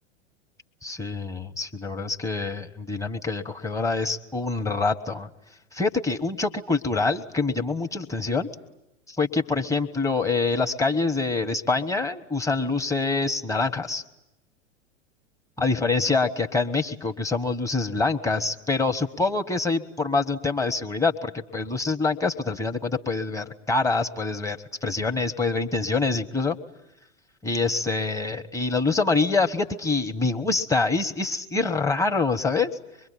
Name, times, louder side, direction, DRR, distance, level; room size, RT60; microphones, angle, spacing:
voice 1, 0.8-5.3 5.7-8.5 9.1-14.0 15.6-26.6 27.4-32.7, left 3 dB, 10° left, 5 dB, 1.3 m, -25 dB
25.0 x 22.0 x 9.9 m, 0.89 s
figure-of-eight pair, 95°, 36 cm